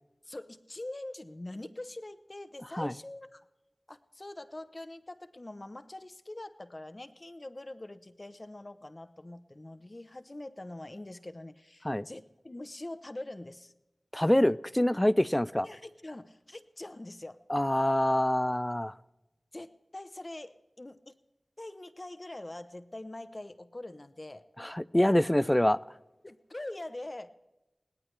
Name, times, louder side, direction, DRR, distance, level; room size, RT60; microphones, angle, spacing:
voice 1, 0.2-3.4 3.9-13.7 15.6-17.4 19.5-21.2 21.6-24.4 26.2-27.3, left 1 dB, 35° left, 11 dB, 0.9 m, -44 dB
voice 2, 14.1-15.7 17.5-18.9 24.6-25.8, left 1 dB, 15° left, 18 dB, 0.4 m, -25 dB
21.0 x 18.0 x 3.3 m, 1.0 s
wide cardioid pair, 50°, 0 cm